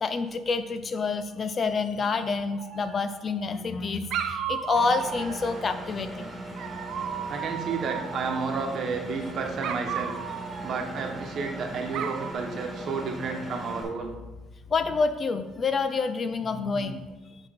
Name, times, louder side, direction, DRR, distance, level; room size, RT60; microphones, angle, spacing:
voice 1, 0.0-6.3 14.7-17.1, left 4 dB, 35° left, 10 dB, 0.4 m, -28 dB
Dog, 2.6-3.4 4.1-5.8 6.6-8.7 9.6-11.5 11.9-12.3, right 8 dB, 65° right, 0.5 m, -35 dB
Engine, 4.7-13.8, right 1 dB, 15° right, 1.6 m, -39 dB
voice 2, 7.3-10.1 10.6-14.2, right 4 dB, 50° right, 3 dB, 1.1 m, -31 dB
8.7 x 4.0 x 4.1 m, 1.1 s
cardioid pair, 110°, 0 cm